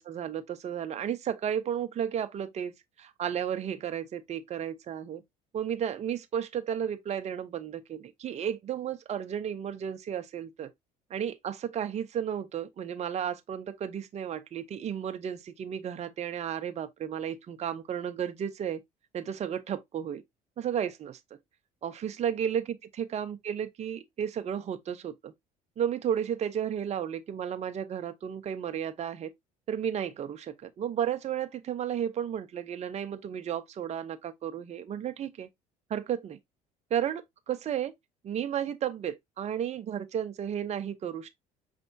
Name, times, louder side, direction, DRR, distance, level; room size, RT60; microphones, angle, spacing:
voice 1, 0.0-5.2 5.5-10.7 11.1-18.8 19.1-20.2 20.6-21.2 21.8-25.3 25.8-29.3 29.7-35.5 35.9-36.4 36.9-37.9 38.2-41.3, right 9 dB, 45° right, 0.7 m, -33 dB
5.4 x 3.4 x 2.6 m
supercardioid pair, 85°, 16 cm